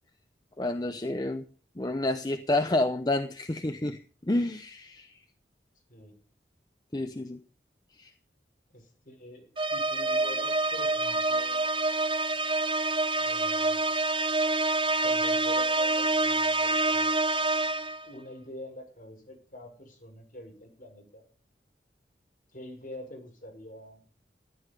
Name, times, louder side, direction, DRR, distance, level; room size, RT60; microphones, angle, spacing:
voice 1, 0.6-1.4 1.8-5.2 6.9-7.4 8.0-8.1, left 2 dB, 25° left, 8 dB, 0.7 m, -29 dB
voice 2, 8.7-11.7 13.2-13.9 15.0-17.1 18.0-21.2 22.5-24.0, left 1 dB, 50° left, 1 dB, 5.9 m, -46 dB
sound 1, 9.6-18.1, right 2 dB, 30° right, 0.6 m, -27 dB
14.5 x 11.5 x 5.3 m, 0.41 s
head